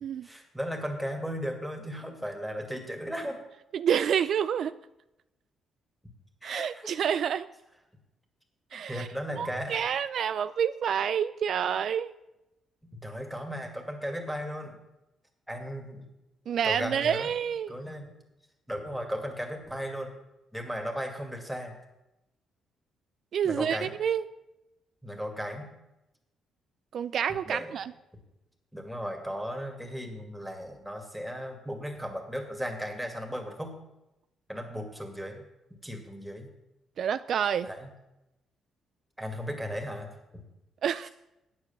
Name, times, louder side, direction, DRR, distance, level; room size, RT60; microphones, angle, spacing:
voice 1, 0.2-3.4 6.4-6.9 8.7-9.8 13.0-14.8 15.5-16.0 16.6-17.3 17.7-18.1 18.7-20.1 20.5-21.7 23.4-23.9 25.0-25.7 27.5-27.7 28.7-33.8 34.5-35.4 35.8-36.5 37.6-37.9 39.2-40.4, equal, ahead, 3 dB, 2.2 m, -36 dB
voice 2, 3.7-4.8 6.4-7.5 8.7-9.1 9.4-12.1 16.5-17.7 23.3-24.2 26.9-27.9 37.0-37.7 40.8-41.1, right 8 dB, 65° right, 13 dB, 0.3 m, -28 dB
9.1 x 7.6 x 7.1 m, 0.93 s
cardioid pair, 90°, 0 cm